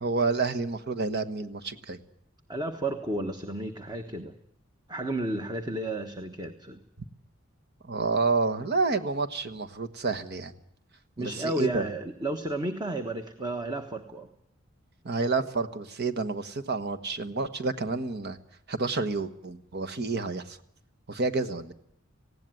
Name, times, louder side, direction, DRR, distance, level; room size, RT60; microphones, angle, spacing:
voice 1, 0.0-2.0 7.9-10.5 11.2-11.9 15.0-18.4 18.7-20.6 21.1-21.7, right 3 dB, 55° right, 8 dB, 1.4 m, -29 dB
voice 2, 2.5-4.3 4.9-6.8 11.2-14.3, right 1 dB, 20° right, 6 dB, 1.3 m, -32 dB
19.0 x 16.5 x 9.1 m, 0.74 s
head